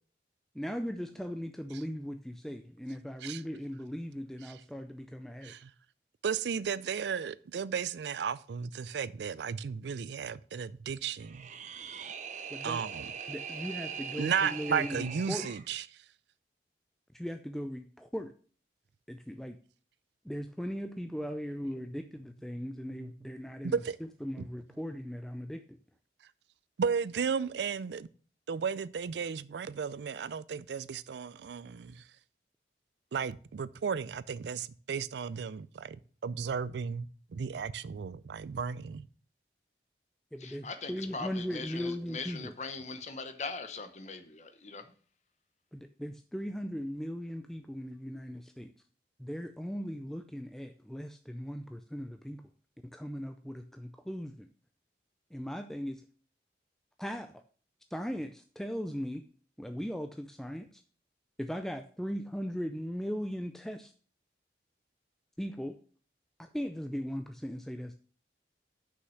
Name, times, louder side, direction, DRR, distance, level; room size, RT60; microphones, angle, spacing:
voice 1, 0.5-5.6 12.5-12.8 13.3-15.5 17.1-18.3 19.1-19.6 20.2-23.8 24.2-25.8 40.3-42.5 45.7-48.7 49.2-52.4 52.9-54.5 55.3-56.0 57.0-57.4 57.9-59.2 59.6-60.8 61.4-63.9 65.4-65.8 66.4-68.0, equal, ahead, 0.4 m, -38 dB
voice 2, 6.2-11.5 12.6-13.1 14.2-15.8 23.6-24.0 26.8-28.1 28.5-32.0 33.1-36.0 36.2-39.1, right 6 dB, 80° right, 0.4 m, -34 dB
sound 1, 11.2-15.7, right 7 dB, 40° right, 0.6 m, -41 dB
voice 3, 40.4-44.9, left 4 dB, 40° left, 0.9 m, -41 dB
6.4 x 5.6 x 6.3 m
head